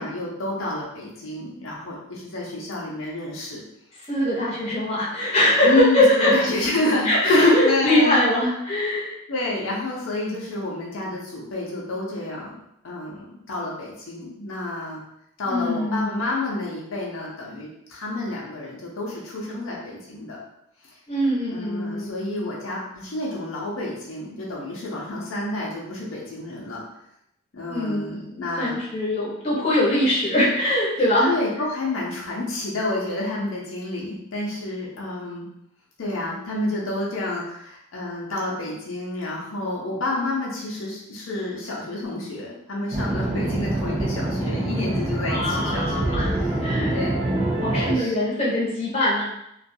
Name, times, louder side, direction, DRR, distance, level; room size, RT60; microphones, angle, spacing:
voice 1, 0.0-3.6 5.6-8.3 9.3-12.5 12.8-15.0 15.4-20.4 21.5-26.8 27.5-28.8 31.3-35.5 36.0-46.6 46.9-47.2 47.7-48.1, left 2 dB, 85° left, -4 dB, 0.6 m, -29 dB
voice 2, 4.1-6.4 7.0-9.1 15.4-16.1 21.1-22.2 27.7-31.3 44.8-44.9 45.2-46.3 46.6-47.0 47.6-49.2, left 1 dB, 30° left, -6 dB, 0.8 m, -22 dB
sound 1, 42.9-48.0, right 1 dB, 30° right, 0.4 m, -25 dB
2.3 x 2.3 x 2.6 m, 0.79 s
head